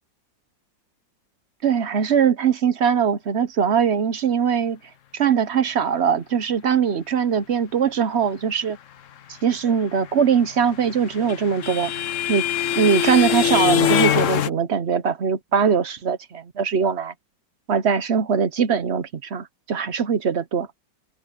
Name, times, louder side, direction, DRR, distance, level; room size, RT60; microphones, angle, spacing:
voice 1, 1.6-4.8 5.1-8.8 9.4-11.9 12.3-12.5 12.8-17.1 17.7-20.7, right 7 dB, 50° right, 0.8 m, -21 dB
sound 1, 10.6-14.5, left 9 dB, 55° left, 0.9 m, -22 dB
omnidirectional pair, 2.0 m